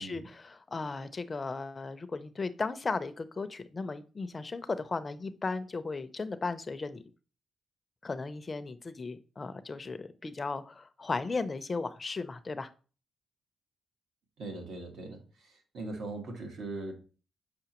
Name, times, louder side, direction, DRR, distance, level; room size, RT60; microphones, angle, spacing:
voice 1, 0.0-7.0 8.0-12.7, left 3 dB, 30° left, 11 dB, 0.5 m, -36 dB
voice 2, 14.4-16.9, right 2 dB, 75° right, 3 dB, 1.5 m, -40 dB
6.7 x 5.5 x 2.9 m, 0.36 s
cardioid pair, 120°, 0 cm